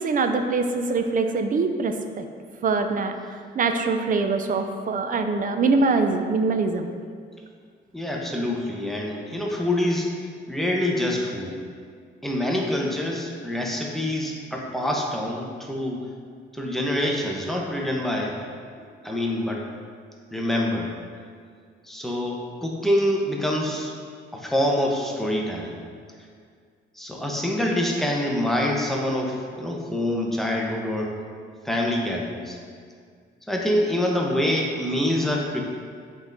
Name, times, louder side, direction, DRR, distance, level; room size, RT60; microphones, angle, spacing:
voice 1, 0.0-2.3 2.6-6.9, right 4 dB, 45° right, 7 dB, 0.6 m, -23 dB
voice 2, 7.9-10.2 10.5-11.6 12.2-16.1 16.5-18.4 19.0-19.6 20.3-20.9 21.8-23.9 24.3-25.8 26.9-31.2 31.6-32.6 33.5-35.6, left 1 dB, ahead, -1 dB, 1.0 m, -26 dB
7.9 x 3.8 x 4.0 m, 2.1 s
cardioid pair, 90°, 20 cm